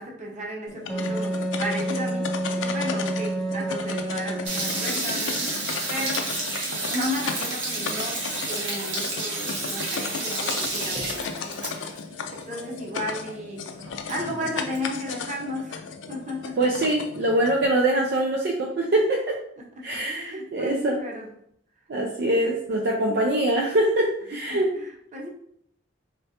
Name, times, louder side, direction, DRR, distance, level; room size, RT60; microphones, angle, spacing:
voice 1, 0.0-6.3 6.9-8.2 8.5-11.7 12.5-13.7 14.1-16.5 19.8-21.3 24.3-25.3, equal, 40° right, -1 dB, 0.9 m, -34 dB
sound 1, 0.7-17.7, left 5 dB, 85° left, 0.4 m, -35 dB
Wind instrument woodwind instrument, 0.9-5.0, right 1 dB, 5° left, 0.4 m, -29 dB
sound 2, 4.4-12.0 12.3-12.4 12.6-12.7 13.3-13.4 13.7-14.8, right 2 dB, 85° right, 1.2 m, -30 dB
voice 2, 16.6-19.4 19.8-21.0 21.9-24.7, right 1 dB, 60° right, 0 dB, 0.5 m, -23 dB
3.6 x 3.2 x 2.8 m, 0.69 s
head